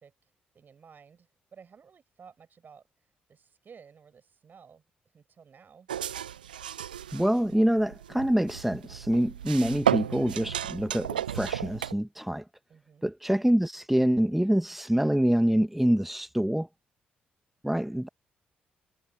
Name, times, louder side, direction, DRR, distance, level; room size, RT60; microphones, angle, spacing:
voice 1, 0.0-4.8 5.1-5.9 12.7-13.1, right 6 dB, 45° right, 7.7 m, -55 dB
sound 1, 5.9-11.9, right 10 dB, 85° right, 0.7 m, -33 dB
voice 2, 7.1-12.4 13.0-16.7 17.6-18.1, equal, 5° right, 1.6 m, -26 dB
figure-of-eight pair, 40°, 5 cm